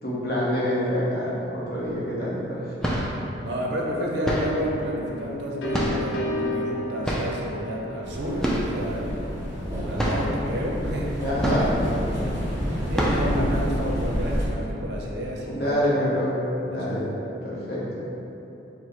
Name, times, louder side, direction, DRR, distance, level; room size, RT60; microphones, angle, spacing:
voice 1, 0.0-2.6 11.2-11.7 15.4-16.3 16.7-17.0 17.4-18.0, equal, 55° left, -7 dB, 0.9 m, -26 dB
sound 1, 1.8-1.9 2.6-3.3 4.2-4.7 5.7-6.2 7.0-7.4 8.4-8.8 9.1-9.2 9.6-9.7 10.0-10.4 11.4-12.0 12.4-12.5 12.9-13.4, equal, 5° left, 0.3 m, -27 dB
voice 2, 3.4-9.2 9.8-11.2 11.6-11.7 12.1-12.3 12.9-15.9 16.7-17.0, equal, 65° right, -2 dB, 0.6 m, -30 dB
sound 2, 4.5-10.2, left 1 dB, 85° left, 0.4 m, -34 dB
sound 3, 8.0-14.5, equal, 15° right, 0.7 m, -29 dB
4.6 x 2.1 x 4.1 m, 3.0 s
head